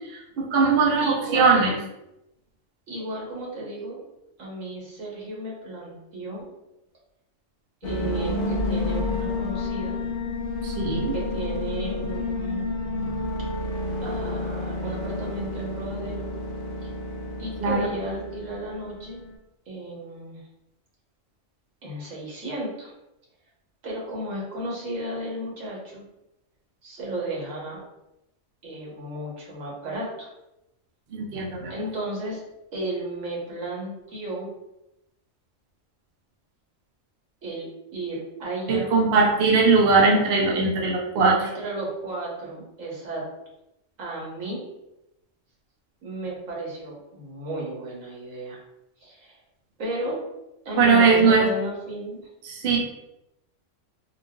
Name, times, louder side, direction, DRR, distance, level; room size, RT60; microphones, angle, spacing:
voice 1, 0.4-1.7 10.6-11.1 17.6-17.9 31.1-31.7 38.7-41.4 50.8-51.5 52.5-52.8, right 4 dB, 60° right, -1 dB, 0.8 m, -20 dB
voice 2, 1.0-1.7 2.9-4.0 4.4-6.4 7.8-10.0 11.1-12.6 14.0-16.3 16.8-16.9 17.4-19.2 19.7-20.4 21.8-22.9 23.8-26.0 26.8-27.8 28.6-30.3 31.7-32.4 32.7-34.5 37.4-38.9 41.4-43.2 44.0-44.6 46.0-48.6 49.0-49.3 49.8-50.2 50.6-52.2, right 1 dB, 85° right, -4 dB, 1.5 m, -33 dB
sound 1, 7.8-19.3, left 2 dB, 55° left, 0.6 m, -30 dB
3.9 x 2.4 x 2.3 m, 0.88 s
omnidirectional pair, 1.3 m